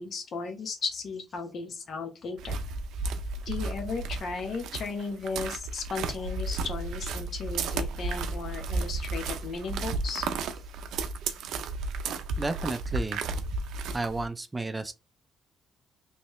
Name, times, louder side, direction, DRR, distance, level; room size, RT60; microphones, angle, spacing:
voice 1, 0.0-2.6 3.5-10.3, left 4 dB, 60° left, 0.9 m, -35 dB
sound 1, 2.4-14.3, right 3 dB, 80° right, 0.4 m, -33 dB
voice 2, 12.4-13.2 13.9-14.9, right 2 dB, 20° right, 0.4 m, -32 dB
3.1 x 2.7 x 3.0 m
cardioid pair, 90°, 0 cm